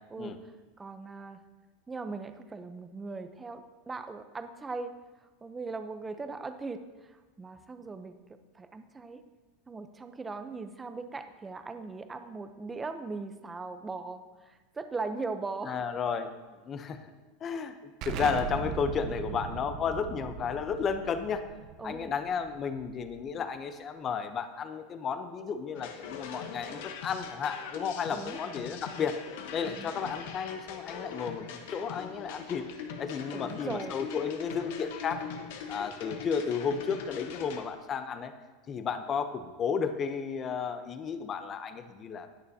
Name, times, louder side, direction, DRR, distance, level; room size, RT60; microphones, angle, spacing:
voice 1, 0.8-1.4 1.9-4.9 5.4-8.1 8.5-9.2 9.7-15.8 21.8-22.1 28.1-28.4 29.6-30.0 33.3-34.0, right 3 dB, 15° right, 8 dB, 0.6 m, -39 dB
voice 2, 15.7-17.0 17.4-17.7 18.1-21.4 21.8-29.2 29.5-32.7 33.0-35.3 35.7-38.3 38.7-42.3, left 6 dB, 25° left, 9 dB, 0.7 m, -33 dB
Explosion, 18.0-23.4, right 6 dB, 45° right, 0.8 m, -39 dB
sound 1, 25.7-37.7, left 7 dB, 75° left, 1.1 m, -42 dB
19.5 x 6.7 x 2.8 m, 1.3 s
supercardioid pair, 150°, 0 cm